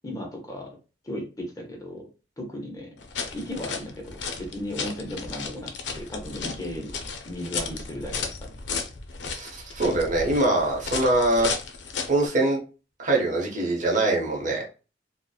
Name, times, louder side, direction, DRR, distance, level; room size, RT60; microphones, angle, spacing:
voice 1, 0.0-0.8 1.0-2.1 2.4-2.9 3.3-5.7 6.0-6.9 7.2-8.6, left 1 dB, 20° left, 1 dB, 0.6 m, -35 dB
sound 1, 3.0-12.3, left 5 dB, 80° left, 0.4 m, -34 dB
voice 2, 9.3-11.5 12.1-12.6 13.0-14.6, right 2 dB, 45° right, -1 dB, 0.8 m, -23 dB
2.8 x 2.0 x 2.3 m, 0.32 s
head